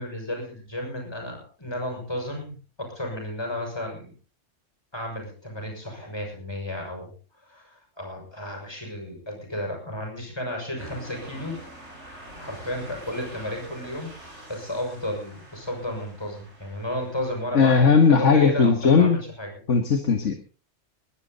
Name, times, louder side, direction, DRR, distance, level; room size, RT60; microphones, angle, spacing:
voice 1, 0.0-4.1 4.9-7.1 7.5-11.6 12.4-19.5, left 1 dB, 20° left, 1 dB, 6.7 m, -33 dB
sound 1, 10.8-18.3, right 1 dB, 65° right, 6.1 m, -45 dB
voice 2, 17.5-19.2 19.7-20.3, left 5 dB, 75° left, 6 dB, 1.8 m, -18 dB
22.5 x 12.0 x 4.1 m, 0.38 s
omnidirectional pair, 1.3 m